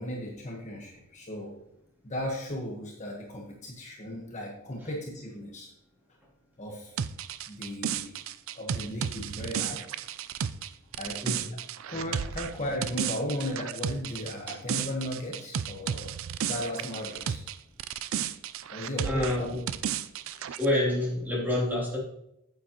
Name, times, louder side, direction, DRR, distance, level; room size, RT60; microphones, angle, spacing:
voice 1, 0.0-1.6 2.0-5.7 6.6-6.9 7.5-8.2 8.5-9.8 11.0-11.2 11.5-11.6 11.9-16.1 16.5-17.4 18.7-19.5, left 1 dB, 35° left, 0 dB, 1.3 m, -36 dB
sound 1, 7.0-17.5 17.8-20.7, right 8 dB, 65° right, 0.4 m, -33 dB
voice 2, 19.0-19.6 20.2-22.0, left 1 dB, 10° right, -6 dB, 3.2 m, -28 dB
9.2 x 8.5 x 3.0 m, 0.80 s
head